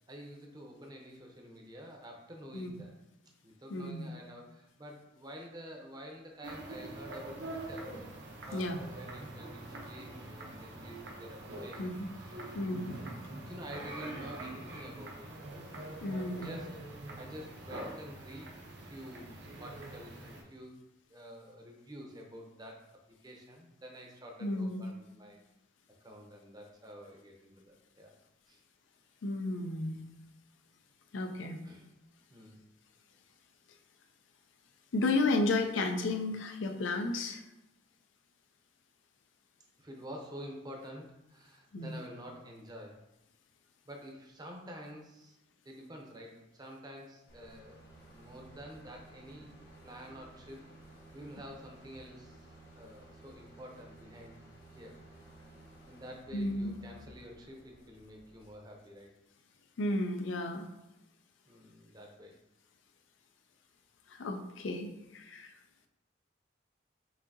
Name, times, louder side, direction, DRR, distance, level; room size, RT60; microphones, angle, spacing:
voice 1, 0.0-2.9 3.4-7.9 8.4-15.3 16.0-16.8 17.2-18.5 18.8-20.7 21.1-25.4 26.0-28.1 28.5-28.6 31.6-31.9 32.3-32.6 39.8-43.1 43.9-45.4 45.6-47.8 48.1-49.5 49.8-50.7 51.1-54.4 54.7-55.0 55.9-59.1 61.5-62.4, equal, 20° right, 1 dB, 0.6 m, -49 dB
voice 2, 3.7-4.1 8.5-8.8 11.8-12.1 12.5-13.0 16.0-16.6 24.4-24.9 29.2-30.0 31.1-31.6 34.9-37.4 41.7-42.0 56.3-56.8 59.8-60.7 64.1-65.5, left 2 dB, 90° left, 6 dB, 0.5 m, -33 dB
sound 1, 6.4-20.4, right 2 dB, 65° right, 0.7 m, -44 dB
sound 2, 47.3-58.6, right 2 dB, 60° left, 1.4 m, -55 dB
5.9 x 2.7 x 2.7 m, 0.90 s
head